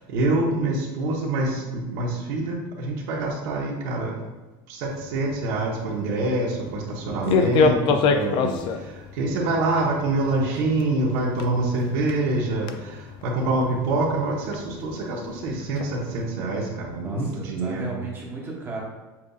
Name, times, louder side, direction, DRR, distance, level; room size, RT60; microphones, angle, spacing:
voice 1, 0.1-4.1 4.7-17.9, right 2 dB, 70° right, -1 dB, 1.1 m, -26 dB
sound 1, 4.8-16.3, left 4 dB, 45° left, 0.4 m, -29 dB
voice 2, 7.0-7.5 17.0-18.8, right 3 dB, 20° right, -2 dB, 0.9 m, -35 dB
7.2 x 2.6 x 2.3 m, 1.2 s
cardioid pair, 160°, 12 cm